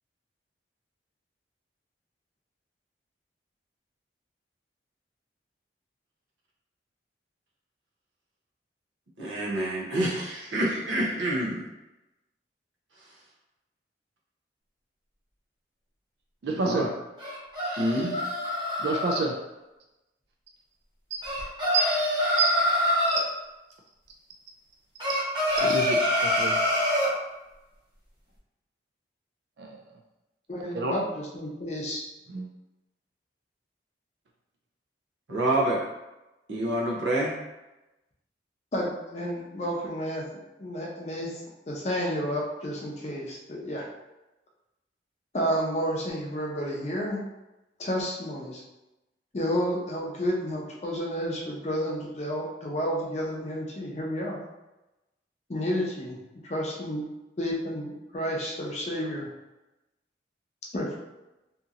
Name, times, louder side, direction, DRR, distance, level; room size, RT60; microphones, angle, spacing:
voice 1, 9.2-11.7 16.6-16.9 17.8-18.2 35.3-35.8 36.5-37.3, right 1 dB, 80° right, 0.8 m, -27 dB
voice 2, 16.4-16.9 18.8-19.3 21.1-21.2 21.7-21.9 22.4-22.5 23.1-23.2 25.6-26.6 29.6-29.8 30.7-30.9 32.3-32.5, right 3 dB, 60° right, 0.3 m, -28 dB
sound 1, 17.2-19.2 21.2-23.2 25.0-27.1, left 1 dB, 25° right, 0.9 m, -25 dB
voice 3, 30.5-32.0 38.7-40.3 40.6-41.4 41.7-43.9 45.3-47.2 47.8-48.6 49.3-54.4 55.5-56.2 56.4-57.0 57.4-59.3 60.7-61.0, equal, 35° left, 0.5 m, -31 dB
2.8 x 2.7 x 2.4 m
head